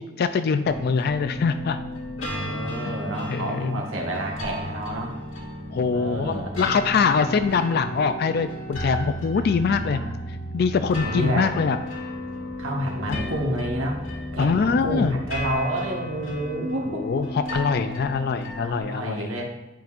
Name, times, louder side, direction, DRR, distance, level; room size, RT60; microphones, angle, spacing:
voice 1, 0.0-1.8 3.3-3.9 5.7-10.0 10.5-11.8 13.1-13.2 14.4-15.2 16.9-19.3, left 5 dB, 55° left, 10 dB, 0.3 m, -23 dB
sound 1, 0.6-18.8, left 1 dB, 80° left, 1.7 m, -34 dB
voice 2, 2.2-5.1 5.9-6.5 9.4-10.2 11.0-11.5 12.6-14.0 14.3-17.2 18.6-19.5, right 1 dB, 85° right, 0 dB, 1.4 m, -29 dB
10.5 x 5.2 x 2.5 m, 1.0 s
head